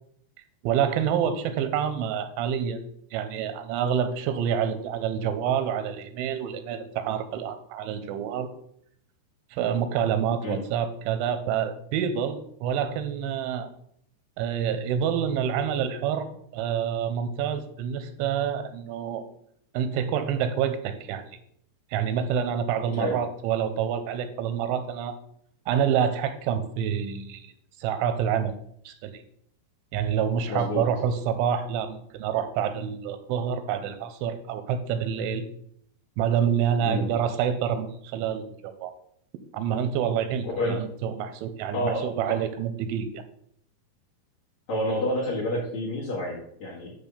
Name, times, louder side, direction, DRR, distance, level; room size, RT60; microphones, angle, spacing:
voice 1, 0.6-8.5 9.5-13.7 14.4-16.3 16.5-19.2 19.7-21.2 21.9-25.2 25.7-27.5 27.8-28.6 28.9-29.2 29.9-35.5 36.2-38.9 39.5-43.2, right 8 dB, 85° right, 9 dB, 3.0 m, -27 dB
voice 2, 30.5-30.9 36.8-37.1 40.6-40.8 41.7-42.4 44.7-46.9, left 1 dB, 50° left, -5 dB, 2.2 m, -29 dB
9.9 x 3.4 x 6.9 m, 0.68 s
omnidirectional pair, 5.5 m